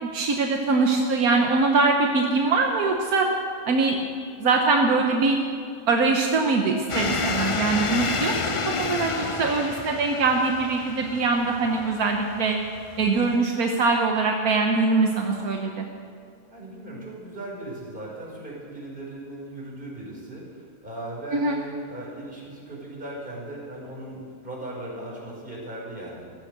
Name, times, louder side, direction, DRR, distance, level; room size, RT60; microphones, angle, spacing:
voice 1, 0.0-3.3 3.7-4.0 4.4-5.4 5.9-8.4 8.7-12.6 13.0-15.9 21.3-21.6, right 3 dB, 80° right, 2 dB, 1.6 m, -22 dB
sound 1, 6.9-13.4, left 3 dB, 35° left, 0.5 m, -30 dB
voice 2, 16.5-26.3, right 1 dB, 35° right, -4 dB, 5.2 m, -38 dB
15.0 x 14.5 x 6.8 m, 2.3 s
omnidirectional pair, 1.5 m